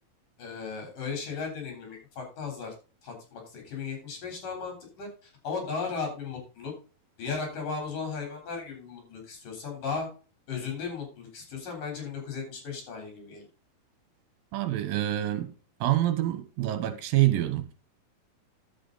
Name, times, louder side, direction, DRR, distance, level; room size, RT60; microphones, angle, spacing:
voice 1, 0.4-2.7 3.0-6.7 7.2-10.1 10.5-13.4, left 5 dB, 65° left, 5.3 m, -36 dB
voice 2, 14.5-15.5 15.8-17.7, right 14 dB, 80° right, 2.8 m, -26 dB
11.0 x 7.7 x 3.9 m
omnidirectional pair, 4.1 m